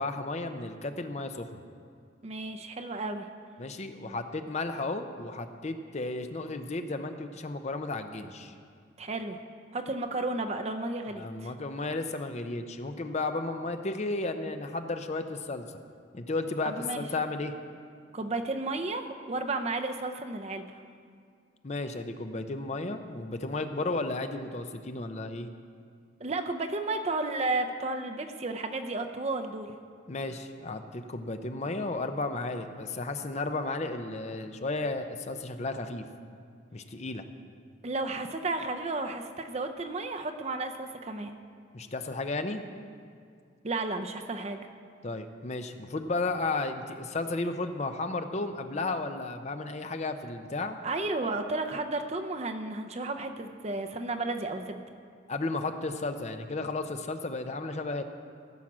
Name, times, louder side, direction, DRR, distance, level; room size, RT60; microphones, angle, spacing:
voice 1, 0.0-1.5 3.6-8.5 11.1-15.7 16.1-17.5 21.6-25.5 30.1-36.1 36.7-37.2 41.7-42.6 45.0-50.8 55.3-58.0, left 2 dB, 35° left, 8 dB, 0.6 m, -33 dB
voice 2, 2.2-3.3 9.0-9.4 9.7-11.5 16.6-17.1 18.1-20.8 26.2-29.7 37.8-41.4 43.6-44.6 50.8-54.8, right 2 dB, 35° right, 6 dB, 0.6 m, -33 dB
16.0 x 7.4 x 6.1 m, 2.2 s
head